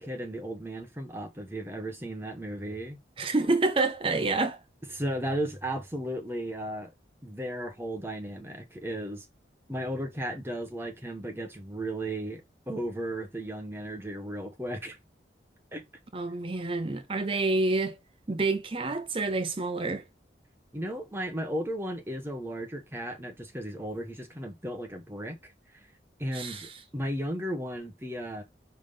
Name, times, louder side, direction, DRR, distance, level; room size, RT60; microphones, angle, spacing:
voice 1, 0.0-3.0 4.9-6.9 7.2-9.3 9.7-15.0 15.7-15.8 20.7-25.5 26.2-28.4, right 1 dB, 15° right, 1.1 m, -35 dB
voice 2, 3.2-4.6 16.1-18.0 18.3-20.0 26.3-26.7, right 3 dB, 30° right, 0.6 m, -28 dB
5.0 x 3.7 x 5.3 m
head